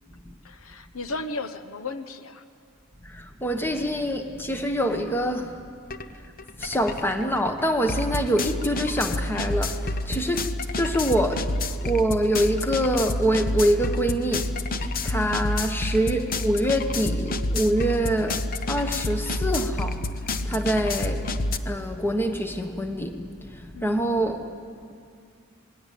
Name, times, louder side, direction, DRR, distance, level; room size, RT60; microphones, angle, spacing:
voice 1, 0.4-2.4 15.1-15.4 23.7-24.0, left 3 dB, 80° left, 11 dB, 1.0 m, -35 dB
voice 2, 3.0-5.6 6.6-10.4 10.7-11.5 11.8-14.5 14.8-21.3 21.6-24.5, equal, 10° left, 6 dB, 1.2 m, -25 dB
sound 1, 5.9-6.0 6.4-21.6, left 2 dB, 40° left, 0.9 m, -29 dB
27.0 x 20.5 x 8.5 m, 2.3 s
head